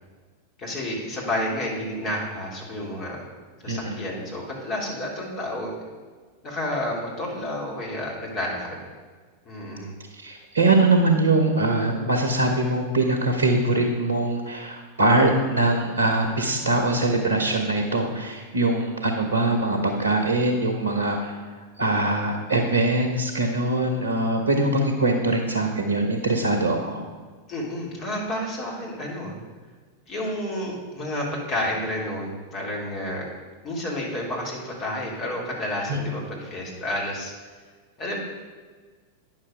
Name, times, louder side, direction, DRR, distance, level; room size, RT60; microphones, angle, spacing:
voice 1, 0.6-3.2 3.6-5.7 6.4-8.8 9.4-9.9 27.5-29.4 30.1-33.2 33.6-37.3 38.0-38.2, left 1 dB, 35° left, -3 dB, 2.9 m, -30 dB
voice 2, 3.7-4.0 10.2-21.4 21.8-27.0 35.9-36.0, right 2 dB, 70° right, 4 dB, 1.0 m, -22 dB
9.9 x 6.3 x 4.9 m, 1.5 s
figure-of-eight pair, 90°, 0 cm